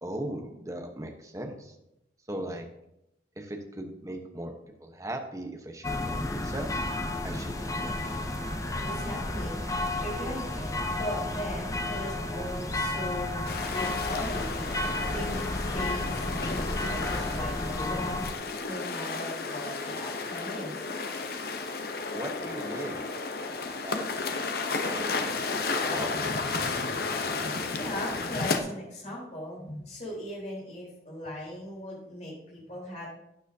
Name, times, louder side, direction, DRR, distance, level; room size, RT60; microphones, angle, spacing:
voice 1, 0.0-1.7 2.3-2.6 3.4-4.5 4.8-6.7 7.2-8.0 22.1-23.0 23.8-24.1 24.8-26.2, right 1 dB, 20° right, 3 dB, 1.0 m, -38 dB
sound 1, 5.8-18.3, left 2 dB, 20° left, 0.6 m, -32 dB
sound 2, 7.5-15.0, right 2 dB, 55° right, 2.5 m, -46 dB
voice 2, 8.8-9.6 10.0-13.4 13.7-18.2 18.6-20.8 27.5-33.2, equal, 40° left, -4 dB, 3.9 m, -38 dB
sound 3, 13.5-28.6, left 4 dB, 55° left, 0.8 m, -33 dB
12.0 x 9.1 x 2.8 m, 0.85 s
head